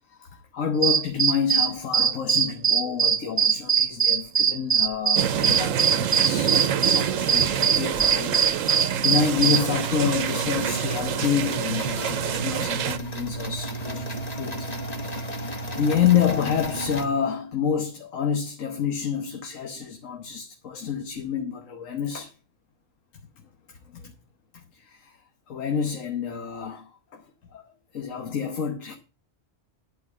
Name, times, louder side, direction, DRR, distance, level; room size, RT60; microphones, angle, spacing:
voice 1, 0.1-8.4 8.7-14.7 15.1-22.3 23.9-24.1 24.5-25.2 25.5-27.2 27.5-27.6 27.9-29.0, left 7 dB, 85° left, 1.5 m, -28 dB
sound 1, 0.8-9.6, right 7 dB, 45° right, 0.5 m, -21 dB
sound 2, 5.2-13.0, right 9 dB, 85° right, 1.1 m, -27 dB
sound 3, 9.2-17.0, right 1 dB, 30° left, 1.6 m, -33 dB
11.5 x 4.7 x 7.8 m
omnidirectional pair, 1.3 m